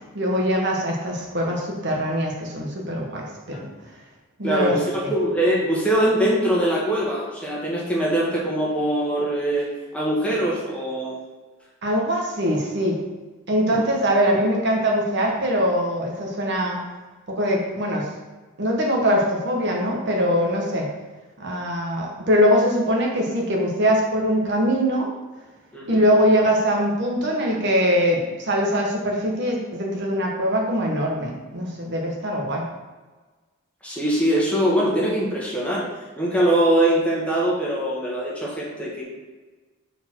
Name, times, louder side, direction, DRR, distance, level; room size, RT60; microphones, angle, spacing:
voice 1, 0.1-3.7 4.4-4.8 5.0-5.1 11.8-13.0 13.5-16.8 17.3-18.1 18.6-20.9 21.4-25.1 25.9-32.7, equal, 55° right, -1 dB, 1.2 m, -22 dB
voice 2, 4.4-9.7 9.9-11.1 13.7-13.8 25.7-26.0 33.8-35.9 36.2-39.0, right 1 dB, 5° left, -5 dB, 1.4 m, -22 dB
6.7 x 4.4 x 4.5 m, 1.3 s
head